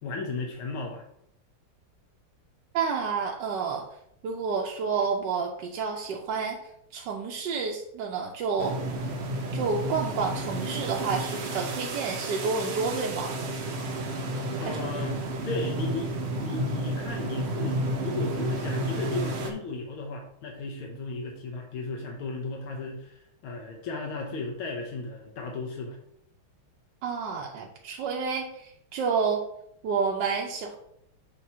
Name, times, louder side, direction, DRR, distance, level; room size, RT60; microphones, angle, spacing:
voice 1, 0.0-1.0 14.6-16.1 16.4-26.0, left 3 dB, 75° left, 1 dB, 1.8 m, -35 dB
voice 2, 2.7-3.8 4.2-6.6 6.9-8.8 9.5-13.4 14.6-15.1 27.0-29.4 29.8-30.8, right 5 dB, 65° right, 0 dB, 1.2 m, -29 dB
sound 1, 8.6-19.5, right 1 dB, 90° right, 0.5 m, -31 dB
7.5 x 3.1 x 5.5 m, 0.73 s
omnidirectional pair, 2.4 m